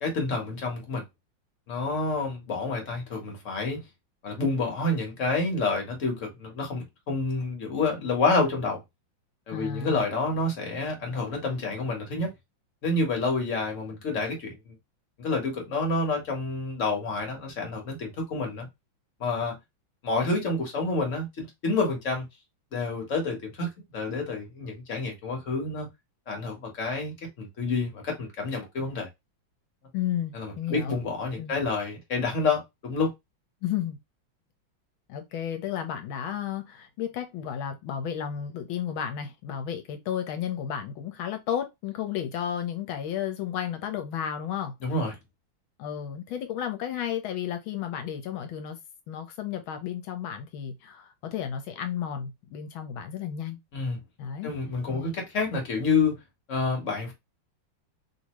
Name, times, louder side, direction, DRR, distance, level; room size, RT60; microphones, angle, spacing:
voice 1, 0.0-1.0 1.7-3.8 4.2-8.8 9.5-12.3 12.8-14.7 15.2-18.7 19.2-19.5 20.0-22.2 22.7-25.9 26.3-29.1 30.3-33.1 44.8-45.1 53.7-54.0 54.4-56.2 56.5-57.1, left 3 dB, 45° left, 1.4 m, -28 dB
voice 2, 9.5-10.0 29.9-31.0 31.4-31.5 33.6-34.0 35.1-44.7 45.8-48.8 49.1-53.6 54.2-54.5 54.9-55.2, left 9 dB, 85° left, 1.6 m, -33 dB
3.4 x 2.7 x 3.0 m
omnidirectional pair, 2.2 m